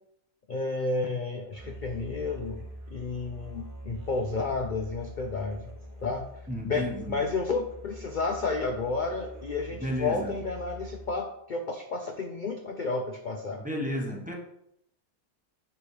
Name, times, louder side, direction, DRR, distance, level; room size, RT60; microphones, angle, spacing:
voice 1, 0.5-2.6 2.9-5.6 6.0-6.3 6.6-13.6, left 3 dB, 55° left, 3 dB, 0.5 m, -31 dB
Musical instrument, 1.5-11.3, right 1 dB, 30° right, 1.8 m, -44 dB
voice 2, 6.5-7.2 9.7-10.5 13.5-14.3, equal, 5° right, -1 dB, 0.9 m, -33 dB
9.8 x 3.4 x 4.8 m, 0.78 s
omnidirectional pair, 1.7 m